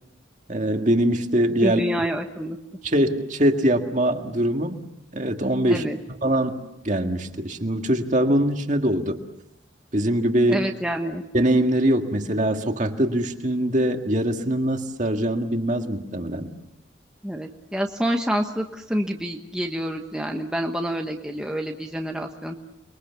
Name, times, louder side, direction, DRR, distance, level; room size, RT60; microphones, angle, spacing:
voice 1, 0.5-1.8 2.8-4.8 5.1-5.9 6.2-9.2 9.9-10.7 11.3-16.5, right 1 dB, 40° right, 5 dB, 1.9 m, -22 dB
voice 2, 1.6-2.6 5.7-6.0 10.5-11.2 17.2-22.6, equal, 5° right, 2 dB, 1.2 m, -27 dB
30.0 x 22.5 x 7.0 m, 0.82 s
head